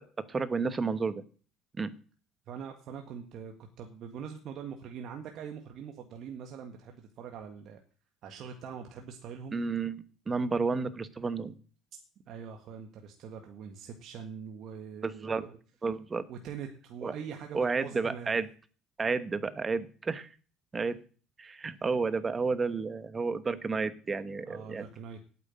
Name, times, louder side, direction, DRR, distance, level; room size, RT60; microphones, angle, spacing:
voice 1, 0.3-1.2 1.8-1.9 9.5-10.0 10.3-11.6 15.0-15.5 15.8-16.3 17.0-17.1 17.5-18.5 19.0-20.3 20.7-21.0 21.4-24.8, right 4 dB, 25° right, 14 dB, 1.1 m, -31 dB
voice 2, 2.5-7.8 8.2-9.6 12.3-15.6 16.3-18.4 24.5-25.3, right 7 dB, 55° right, 4 dB, 1.6 m, -43 dB
9.0 x 8.2 x 9.1 m, 0.41 s
cardioid pair, 120°, 0 cm